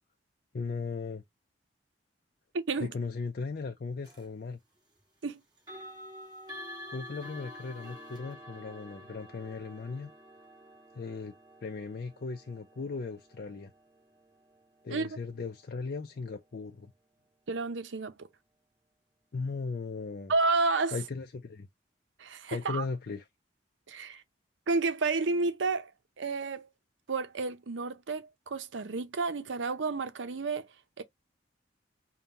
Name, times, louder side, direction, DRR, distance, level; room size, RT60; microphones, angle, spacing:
voice 1, 0.5-1.2 2.8-4.6 6.9-10.1 10.9-11.3 11.6-13.7 14.8-16.9 19.3-20.3 20.9-21.7 22.5-23.2, left 4 dB, 55° left, 0.4 m, -37 dB
voice 2, 2.5-2.9 5.2-5.4 14.9-15.1 17.5-18.1 20.3-20.9 22.2-22.8 23.9-24.2 24.7-25.9 26.2-26.7 27.1-30.7 31.0-31.1, right 3 dB, 85° right, 0.7 m, -30 dB
sound 1, 4.0-4.3 5.6-16.4, left 1 dB, 20° right, 1.9 m, -49 dB
5.2 x 2.3 x 2.8 m
head